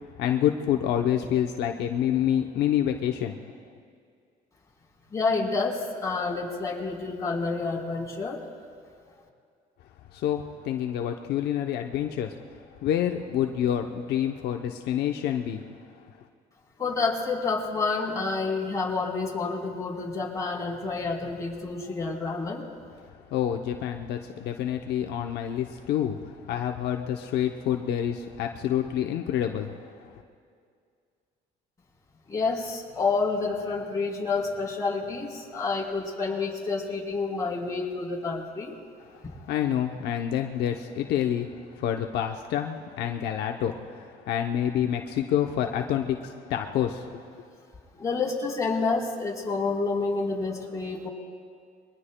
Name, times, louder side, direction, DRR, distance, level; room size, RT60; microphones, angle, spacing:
voice 1, 0.2-3.4 10.1-12.4 12.8-15.6 23.3-30.1 39.1-47.4, left 10 dB, 75° left, 4 dB, 0.8 m, -28 dB
voice 2, 5.1-8.4 16.8-22.6 32.3-38.7 39.2-39.3 47.9-51.1, left 4 dB, 20° left, -4 dB, 4.0 m, -29 dB
28.0 x 22.5 x 2.3 m, 2.2 s
cardioid pair, 110°, 17 cm